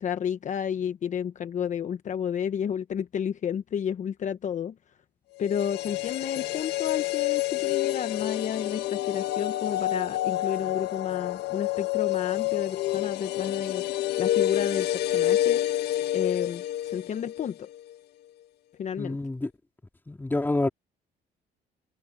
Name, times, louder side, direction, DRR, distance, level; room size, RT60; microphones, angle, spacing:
voice 1, 0.0-4.7 5.4-15.6 16.1-17.7 18.8-19.2, left 8 dB, 45° left, 1.1 m, -31 dB
sound 1, 5.4-17.5 17.8-17.9, left 14 dB, 75° left, 1.7 m, -28 dB
voice 2, 19.0-19.5 20.1-20.7, left 2 dB, 10° left, 3.0 m, -27 dB
cardioid pair, 110°, 17 cm